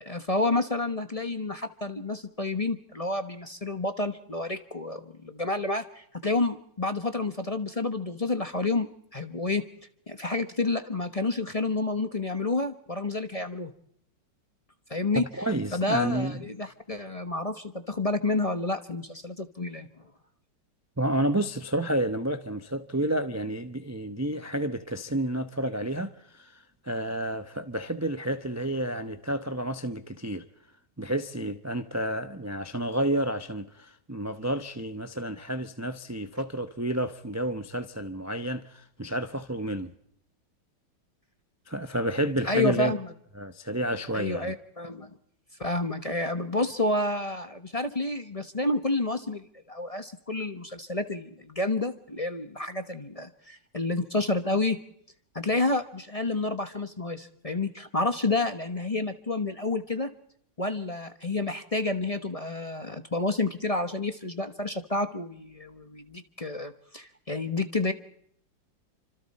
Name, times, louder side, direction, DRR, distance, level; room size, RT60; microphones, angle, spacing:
voice 1, 0.0-9.6 10.1-13.7 14.9-15.2 15.7-19.9 42.4-43.1 44.1-45.1 45.6-54.8 55.3-60.1 60.6-67.9, left 2 dB, 25° left, 0.9 m, -29 dB
voice 2, 15.4-16.4 21.0-30.4 31.0-39.9 41.7-42.9 43.4-44.5, right 1 dB, 15° right, 0.5 m, -30 dB
29.5 x 26.0 x 4.3 m
omnidirectional pair, 2.0 m